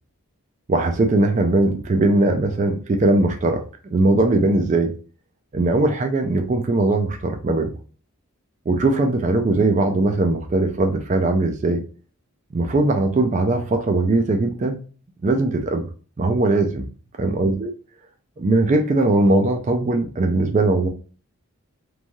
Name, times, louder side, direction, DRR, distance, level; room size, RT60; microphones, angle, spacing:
voice 1, 0.7-3.6 3.9-4.9 5.5-7.7 8.7-11.8 12.5-14.8 15.2-15.8 16.2-16.9 17.2-17.7 18.4-20.9, right 2 dB, 35° right, 5 dB, 0.3 m, -20 dB
3.1 x 2.6 x 2.2 m, 0.38 s
head